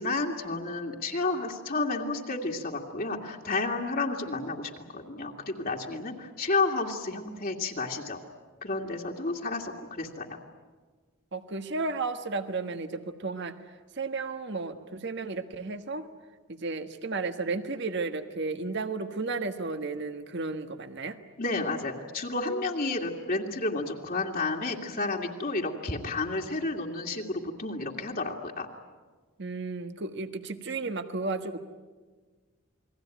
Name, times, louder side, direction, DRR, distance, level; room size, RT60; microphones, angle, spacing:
voice 1, 0.0-8.2 8.6-10.4 21.4-28.7, left 3 dB, 45° left, 0 dB, 2.3 m, -31 dB
voice 2, 11.3-13.5 13.9-16.1 16.5-21.2 29.4-31.6, right 3 dB, 55° right, 8 dB, 1.5 m, -33 dB
29.0 x 21.5 x 9.2 m, 1.4 s
head